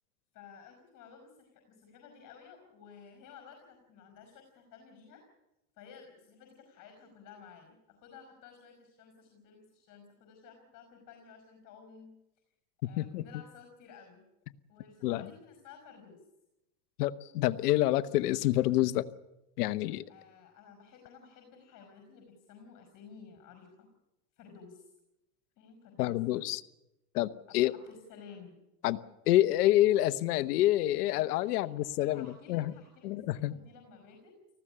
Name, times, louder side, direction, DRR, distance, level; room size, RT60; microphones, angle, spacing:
voice 1, 0.3-5.2 5.8-12.2 12.8-14.2 14.7-16.2 20.1-23.9 24.4-24.9 25.6-26.5 27.5-28.6 31.4-31.7 32.0-34.4, left 6 dB, 45° left, 5 dB, 5.3 m, -54 dB
voice 2, 12.8-13.2 15.0-15.3 17.0-19.1 19.6-20.0 26.0-26.6 27.1-27.7 28.8-29.0 29.3-32.7 33.0-33.6, left 15 dB, 75° left, 12 dB, 1.1 m, -27 dB
19.5 x 15.5 x 9.9 m, 0.95 s
supercardioid pair, 115°, 46 cm